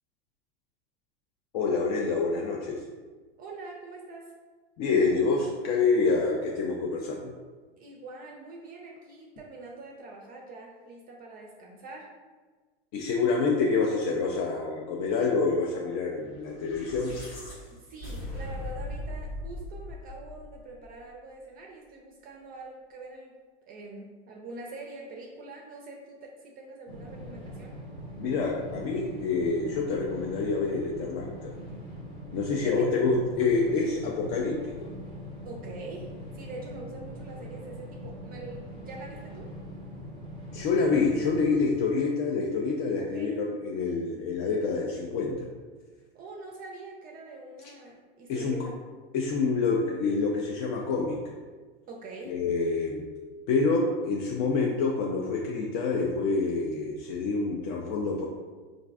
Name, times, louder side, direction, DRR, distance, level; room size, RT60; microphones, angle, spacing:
voice 1, 1.5-2.8 4.8-7.3 12.9-17.2 28.2-31.6 32.3-34.9 40.5-45.5 48.3-48.6 49.1-51.2 52.2-53.0 53.5-58.3, left 4 dB, 50° left, -1 dB, 0.5 m, -27 dB
voice 2, 3.4-4.3 7.8-12.1 17.7-27.8 32.5-32.9 35.5-39.5 43.0-43.4 46.1-48.8 51.9-52.4, right 2 dB, 30° right, 0 dB, 0.4 m, -44 dB
sound 1, 16.5-20.9, left 1 dB, 80° left, 1.3 m, -39 dB
sound 2, 26.9-41.6, equal, 15° left, 0.8 m, -42 dB
3.8 x 2.5 x 2.3 m, 1.4 s
hypercardioid pair, 100°, 30 cm